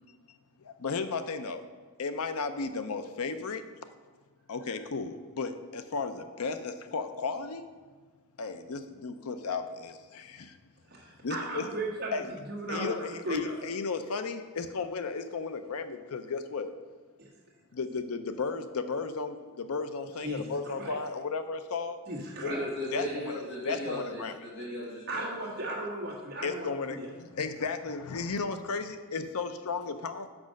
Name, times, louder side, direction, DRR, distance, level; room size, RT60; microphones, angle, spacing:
voice 1, 0.6-1.6 2.0-3.6 4.5-7.7 8.4-10.6 11.2-11.7 12.1-12.3 12.7-16.7 17.7-22.0 22.4-22.5 22.9-23.3 23.6-24.3 26.4-30.3, left 4 dB, 85° left, 9 dB, 0.6 m, -34 dB
voice 2, 10.9-13.6 17.2-17.3 20.2-21.0 22.1-22.7 25.1-27.1, right 1 dB, 45° right, -4 dB, 1.5 m, -36 dB
voice 3, 22.5-25.3, equal, 55° left, -9 dB, 1.7 m, -36 dB
6.0 x 5.1 x 6.3 m, 1.4 s
head